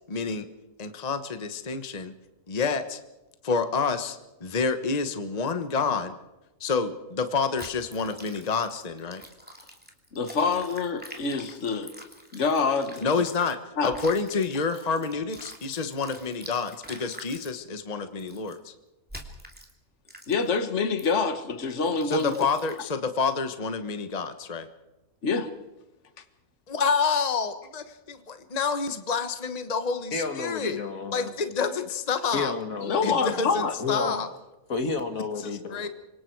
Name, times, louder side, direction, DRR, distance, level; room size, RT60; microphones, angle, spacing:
voice 1, 0.1-0.5 0.8-2.1 2.5-3.0 3.4-6.1 6.6-9.2 13.0-13.6 13.8-18.7 22.0-24.7 26.7-30.8 31.1-32.5 33.0-34.3 35.7-35.9, left 5 dB, 30° left, 9 dB, 1.2 m, -28 dB
sound 1, 7.6-13.5 13.9-17.5 18.2-18.6 19.1-19.7 20.1-20.6 21.0-21.2 21.7-23.0, equal, 5° right, 2.8 m, -46 dB
voice 2, 10.1-11.9 12.3-13.1 13.8-13.9 20.3-22.5 25.2-25.5 32.8-33.7, left 4 dB, 55° left, 9 dB, 1.8 m, -26 dB
voice 3, 30.1-31.3 32.3-34.2 34.7-35.9, left 4 dB, 70° left, 6 dB, 2.5 m, -31 dB
27.0 x 24.5 x 4.7 m, 1.0 s
omnidirectional pair, 1.5 m